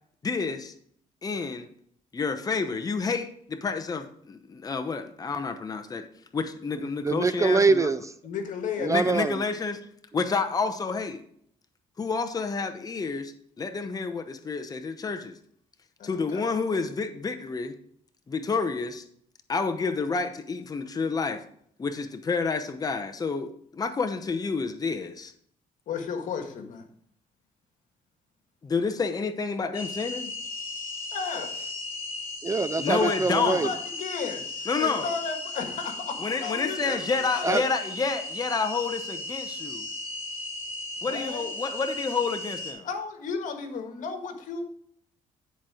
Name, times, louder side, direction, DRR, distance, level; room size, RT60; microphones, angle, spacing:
voice 1, 0.2-0.7 1.2-1.7 2.1-6.1 6.3-7.9 8.9-9.8 10.1-11.2 12.0-15.4 16.0-17.8 18.3-19.0 19.5-21.4 21.8-25.3 28.6-30.3 32.8-33.7 34.7-35.1 36.2-39.9 41.0-42.9, left 4 dB, 25° left, 0.8 m, -29 dB
voice 2, 7.0-8.0 8.8-9.4 32.4-33.7 37.4-37.6, right 4 dB, 20° right, 0.4 m, -23 dB
voice 3, 8.2-9.1 16.0-16.4 25.9-26.9 31.1-31.7 32.8-37.6 41.0-41.4 42.8-44.6, left 5 dB, 70° left, 1.6 m, -34 dB
sound 1, 29.7-42.7, left 2 dB, 45° left, 2.9 m, -36 dB
10.0 x 4.5 x 4.9 m
cardioid pair, 90°, 14 cm